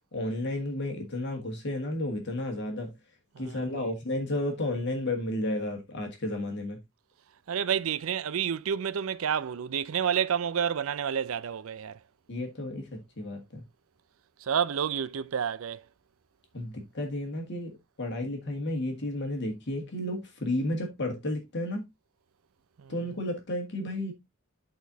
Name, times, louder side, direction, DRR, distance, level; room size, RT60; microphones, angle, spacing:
voice 1, 0.1-2.9 3.4-6.8 12.3-13.6 16.5-21.9 22.9-24.1, left 1 dB, 55° left, 1.6 m, -32 dB
voice 2, 3.3-3.9 7.5-12.0 14.4-15.9 22.8-22.9, right 8 dB, 75° right, 0.5 m, -30 dB
11.0 x 4.2 x 2.7 m
head